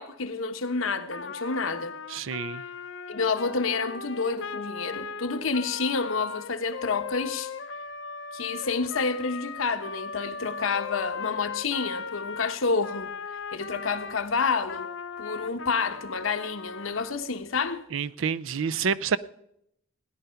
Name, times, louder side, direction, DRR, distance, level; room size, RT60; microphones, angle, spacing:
voice 1, 0.0-1.9 3.1-7.5 8.3-13.1 13.5-14.9 15.2-17.8, left 4 dB, 80° left, 1.0 m, -29 dB
Trumpet, 1.1-14.2 14.6-17.2, left 5 dB, 60° left, 0.6 m, -38 dB
voice 2, 2.1-2.6 17.9-19.2, right 6 dB, 70° right, 0.5 m, -28 dB
17.0 x 10.5 x 5.7 m
head